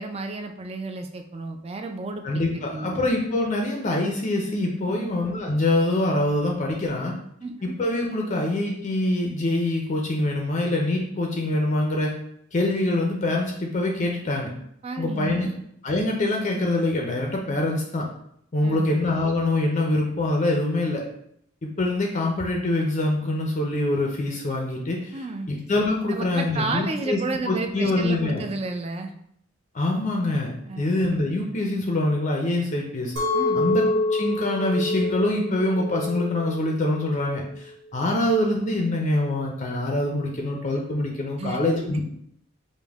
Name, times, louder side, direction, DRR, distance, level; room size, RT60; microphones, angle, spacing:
voice 1, 0.0-3.0 4.9-5.1 7.4-7.8 14.8-15.6 18.6-18.9 25.1-25.5 26.1-29.1 30.7-30.9 33.3-33.7 41.4-41.6, right 3 dB, 30° right, 6 dB, 0.3 m, -32 dB
voice 2, 2.2-7.1 7.6-12.2 12.5-14.5 15.0-15.5 15.8-18.1 18.5-21.0 21.6-25.2 25.5-27.2 27.5-28.4 29.7-33.1 33.5-33.8 34.1-42.0, left 2 dB, 35° left, 0 dB, 0.5 m, -24 dB
Chink clink, 33.2-38.3, left 2 dB, 90° right, 1.2 m, -27 dB
5.1 x 2.1 x 3.4 m, 0.72 s
head